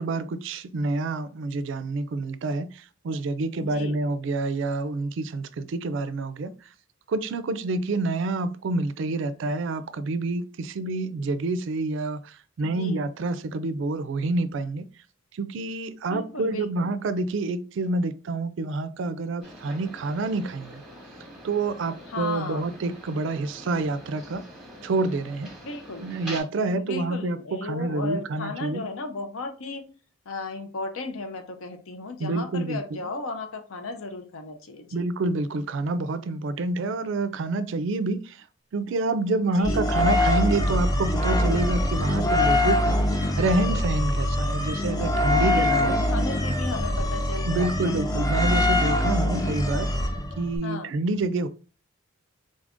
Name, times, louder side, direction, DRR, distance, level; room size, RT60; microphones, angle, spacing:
voice 1, 0.0-6.5 7.1-14.9 15.3-20.8 21.4-24.4 24.8-25.5 26.0-28.8 32.2-32.8 34.9-38.4 38.7-45.9 47.5-49.9 50.4-51.5, right 3 dB, 60° right, 0.3 m, -28 dB
voice 2, 3.6-4.0 12.6-13.1 16.1-16.9 22.0-22.7 25.6-26.1 26.7-29.9 30.3-35.1 39.5-39.9 45.4-48.1 50.6-50.9, left 3 dB, 80° left, 0.6 m, -35 dB
sound 1, 19.4-26.4, right 1 dB, ahead, 1.0 m, -44 dB
sound 2, 39.6-50.6, left 1 dB, 15° left, 0.4 m, -24 dB
3.8 x 2.5 x 3.5 m
head